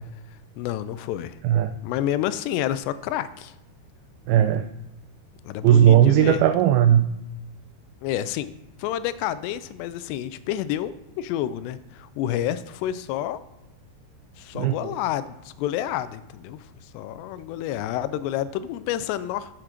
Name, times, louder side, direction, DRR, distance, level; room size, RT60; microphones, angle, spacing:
voice 1, 0.6-1.4 1.8-3.5 5.4-6.4 8.0-8.5 8.8-13.4 14.4-16.6 16.9-19.5, left 12 dB, 90° left, 15 dB, 2.7 m, -29 dB
voice 2, 4.3-4.7 5.6-7.1 14.6-14.9, right 10 dB, 90° right, 9 dB, 2.1 m, -17 dB
10.5 x 7.4 x 5.1 m, 0.94 s
omnidirectional pair, 4.8 m